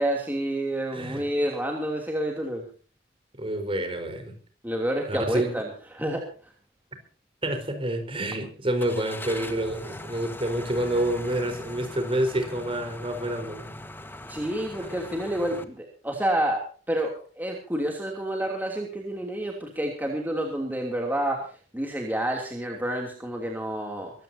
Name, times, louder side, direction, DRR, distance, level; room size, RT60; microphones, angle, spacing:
voice 1, 0.0-2.6 4.6-5.7 5.9-6.5 14.3-24.1, right 1 dB, 10° right, 1 dB, 3.0 m, -29 dB
voice 2, 0.9-1.2 3.3-4.3 5.1-5.5 7.4-13.8 14.7-15.0, right 1 dB, 30° right, 7 dB, 4.5 m, -28 dB
Car / Engine starting, 8.8-15.6, left 1 dB, 10° left, 1.5 m, -41 dB
23.5 x 16.0 x 2.8 m, 0.40 s
head